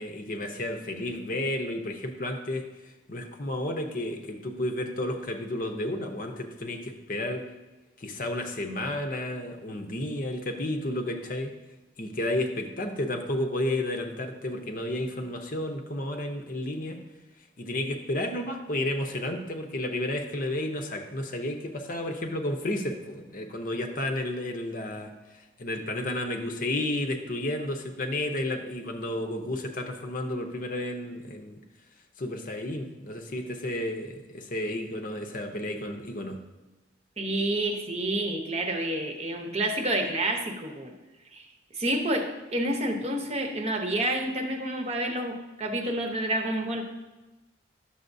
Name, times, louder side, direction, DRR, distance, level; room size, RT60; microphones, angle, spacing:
voice 1, 0.0-2.7 3.1-7.5 8.0-11.5 12.0-17.0 17.6-25.1 25.6-31.6 32.2-36.4, left 1 dB, 45° left, 4 dB, 0.7 m, -32 dB
voice 2, 37.2-40.9 41.3-41.5 41.7-46.8, right 1 dB, 35° right, 2 dB, 0.8 m, -29 dB
11.0 x 7.0 x 2.7 m, 1.1 s
head